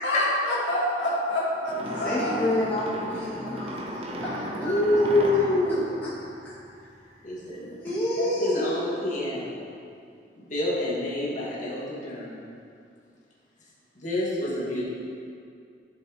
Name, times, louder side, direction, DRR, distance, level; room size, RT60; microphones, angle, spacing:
voice 1, 0.0-2.7 5.1-5.5, left 1 dB, 80° left, -6 dB, 1.8 m, -28 dB
sound 1, 1.7-7.0, equal, 35° right, 0.8 m, -35 dB
voice 2, 1.8-4.8 6.4-6.5 7.8-8.7, left 1 dB, 10° left, -11 dB, 1.3 m, -29 dB
voice 3, 4.6-5.9 7.2-7.7 8.2-9.6 10.5-12.4 14.0-14.8, left 1 dB, 45° left, -7 dB, 1.8 m, -26 dB
11.5 x 6.3 x 3.0 m, 2.3 s
head